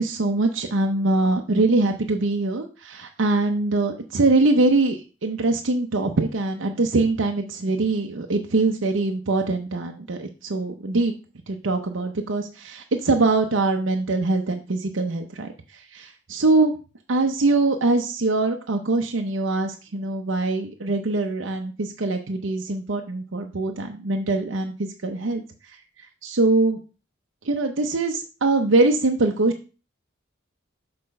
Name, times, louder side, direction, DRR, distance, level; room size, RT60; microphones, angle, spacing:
voice 1, 0.0-11.1 11.5-16.8 17.1-25.8 26.2-26.8 27.4-29.5, right 2 dB, 80° right, 4 dB, 0.7 m, -23 dB
6.8 x 4.3 x 5.3 m, 0.35 s
head